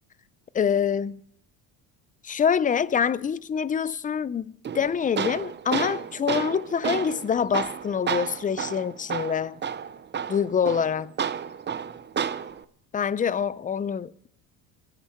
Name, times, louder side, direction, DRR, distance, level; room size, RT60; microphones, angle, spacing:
voice 1, 0.5-1.2 2.2-9.6 10.3-11.1 12.9-14.3, left 7 dB, 20° left, 0.4 m, -26 dB
Tools, 4.6-12.6, right 7 dB, 25° right, 0.6 m, -31 dB
22.0 x 9.9 x 4.4 m
supercardioid pair, 100°, 44 cm